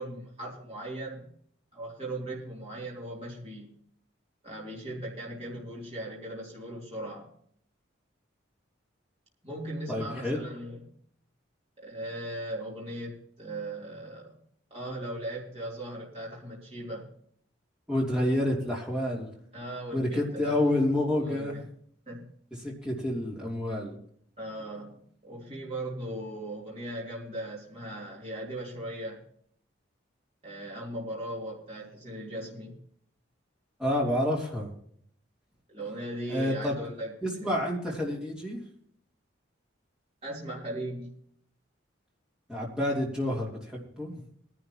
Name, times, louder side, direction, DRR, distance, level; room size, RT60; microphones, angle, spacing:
voice 1, 0.0-1.3 1.7-3.8 4.4-7.3 9.4-10.9 11.8-14.4 14.7-17.1 19.5-20.8 21.2-21.6 22.1-22.3 24.4-29.2 30.4-32.8 35.7-37.2 37.4-37.5 40.2-41.1, right 1 dB, 30° right, -5 dB, 3.1 m, -38 dB
voice 2, 9.9-10.4 17.9-19.3 19.9-21.5 22.6-24.0 33.8-34.7 36.3-36.7 37.2-38.6 42.5-44.1, left 1 dB, 5° right, -4 dB, 3.0 m, -29 dB
21.5 x 11.0 x 3.0 m, 0.63 s
head